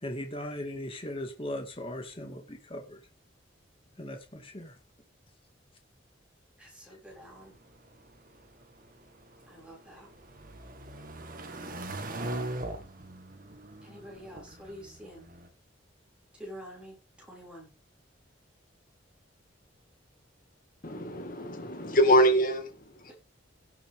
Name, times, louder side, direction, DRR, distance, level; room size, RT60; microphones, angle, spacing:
voice 1, 0.0-3.0 4.0-4.8, left 1 dB, 30° left, 4 dB, 2.3 m, -38 dB
voice 2, 6.6-7.5 9.5-10.1 13.8-15.3 16.4-17.7 23.1-23.2, equal, 5° right, -4 dB, 6.2 m, -47 dB
sound 1, 7.2-15.5, right 1 dB, 45° right, 2.0 m, -41 dB
voice 3, 20.8-23.1, equal, 45° left, 6 dB, 2.2 m, -25 dB
17.0 x 8.8 x 3.7 m, 0.32 s
head